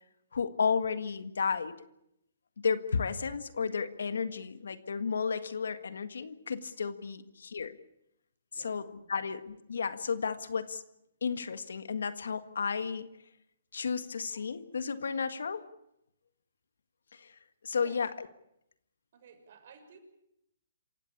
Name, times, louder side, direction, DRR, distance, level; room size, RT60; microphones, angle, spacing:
voice 1, 0.3-1.8 2.6-7.8 8.6-10.8 11.2-13.1 13.7-15.7 17.1-17.3 17.6-18.3, left 5 dB, 80° left, 11 dB, 1.7 m, -33 dB
voice 2, 8.5-9.2 17.8-18.0 19.1-20.0, right 6 dB, 55° right, 6 dB, 6.1 m, -56 dB
27.0 x 16.0 x 8.6 m, 0.80 s
hypercardioid pair, 140°, 0 cm